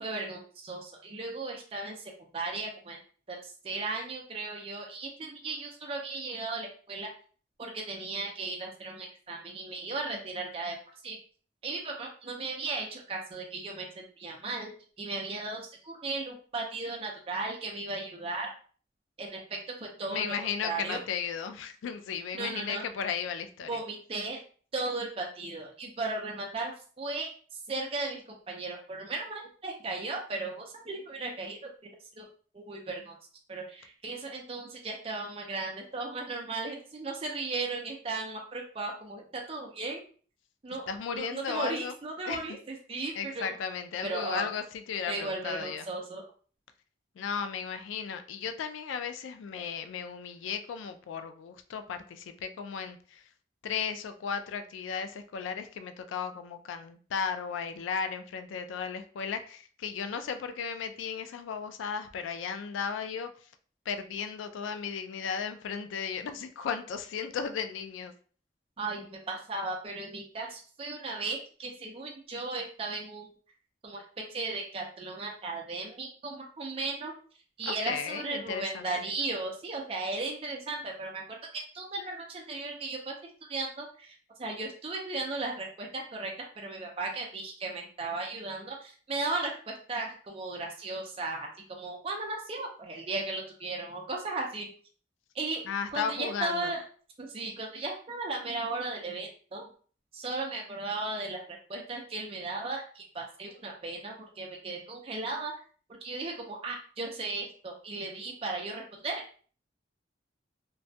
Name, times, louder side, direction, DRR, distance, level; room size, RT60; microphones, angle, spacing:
voice 1, 0.0-3.0 3.3-7.1 7.6-10.8 11.0-11.2 11.6-14.7 15.0-18.5 19.2-19.4 19.8-20.3 20.6-21.0 22.3-22.8 23.7-24.4 24.7-31.6 32.2-32.3 32.5-33.1 33.5-40.0 40.6-40.9 41.1-43.5 44.0-44.5 45.1-46.2 68.8-73.3 73.8-74.0 74.3-77.1 77.6-81.2 81.5-83.1 83.5-94.7 95.3-95.6 95.9-96.8 97.2-99.7 100.1-105.5 106.0-109.2, right 3 dB, 30° right, 0 dB, 0.4 m, -36 dB
voice 2, 20.1-23.8 40.9-41.9 42.3-42.6 43.1-45.9 47.2-53.2 53.6-63.3 63.9-68.1 77.6-79.0 95.7-96.7, left 6 dB, 90° left, 10 dB, 0.3 m, -35 dB
2.2 x 2.1 x 2.6 m, 0.43 s
head